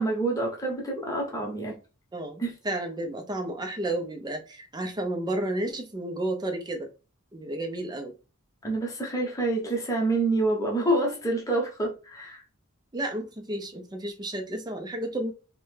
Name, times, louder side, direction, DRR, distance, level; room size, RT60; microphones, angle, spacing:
voice 1, 0.0-1.8 2.4-2.5 8.6-12.4, right 2 dB, 15° left, 0.8 m, -27 dB
voice 2, 2.1-6.9 7.3-8.1 12.9-15.3, right 1 dB, 20° right, 0.5 m, -32 dB
3.2 x 2.1 x 3.2 m
head